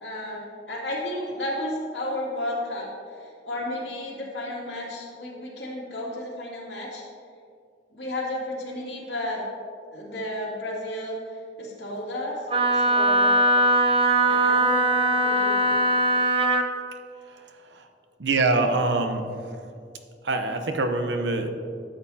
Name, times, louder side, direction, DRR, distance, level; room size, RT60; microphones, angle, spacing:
voice 1, 0.0-2.9 3.2-7.0 7.9-9.4 9.9-12.5 12.7-13.3 14.3-15.8, left 1 dB, 70° left, -4 dB, 2.4 m, -33 dB
Wind instrument woodwind instrument, 12.5-16.7, right 1 dB, 30° right, 0.5 m, -20 dB
voice 2, 17.3-17.9 18.2-19.3 20.2-21.5, right 3 dB, 85° right, 6 dB, 0.8 m, -25 dB
13.0 x 7.8 x 2.8 m, 2.4 s
head